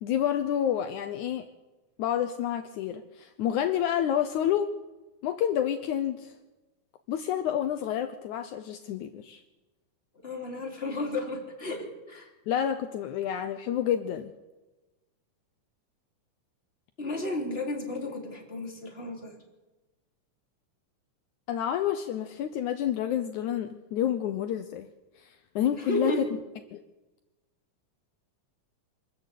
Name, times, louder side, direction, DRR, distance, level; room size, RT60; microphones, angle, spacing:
voice 1, 0.0-1.5 2.0-4.7 5.2-6.3 7.1-9.4 12.5-14.3 21.5-24.9 25.2-26.3 26.7-26.8, left 10 dB, 75° left, 8 dB, 2.2 m, -29 dB
voice 2, 10.2-12.3 17.0-19.4 25.8-26.2, left 1 dB, 20° left, 0 dB, 3.6 m, -33 dB
25.5 x 13.5 x 8.4 m, 1.1 s
omnidirectional pair, 3.7 m